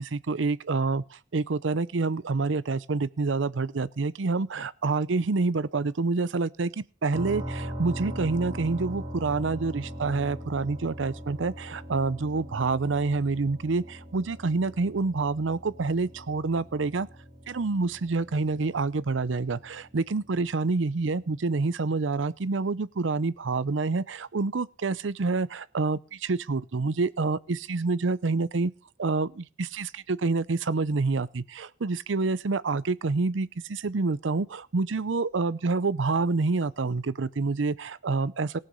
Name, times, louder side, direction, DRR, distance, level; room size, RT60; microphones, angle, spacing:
voice 1, 0.0-17.1 17.5-28.7 29.0-38.6, right 3 dB, 85° right, 0.6 m, -27 dB
sound 1, 7.1-20.8, equal, 25° right, 2.8 m, -40 dB
18.5 x 6.6 x 5.5 m
head